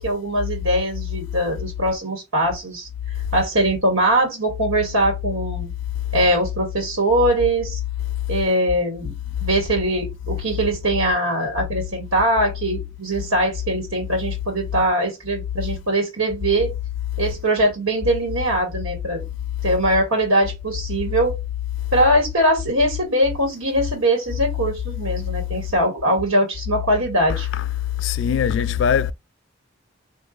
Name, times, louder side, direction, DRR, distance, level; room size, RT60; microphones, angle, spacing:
voice 1, 0.0-2.9 3.3-5.7 6.1-7.8 8.3-9.1 9.4-16.7 17.2-19.2 19.6-21.4 21.9-27.5, right 1 dB, 85° right, 1.6 m, -21 dB
voice 2, 28.0-29.1, left 8 dB, 60° left, 0.3 m, -20 dB
3.9 x 2.6 x 3.8 m
head